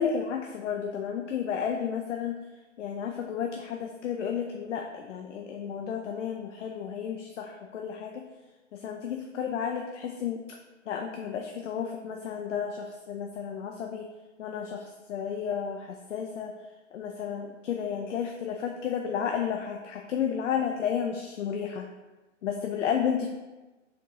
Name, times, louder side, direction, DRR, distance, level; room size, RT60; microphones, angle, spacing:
voice 1, 0.0-2.4 2.8-8.2 8.7-10.4 10.9-14.1 14.4-16.5 16.9-21.9 22.4-23.3, left 7 dB, 70° left, 2 dB, 0.5 m, -32 dB
3.7 x 3.5 x 2.9 m, 1.2 s
hypercardioid pair, 145°, 38 cm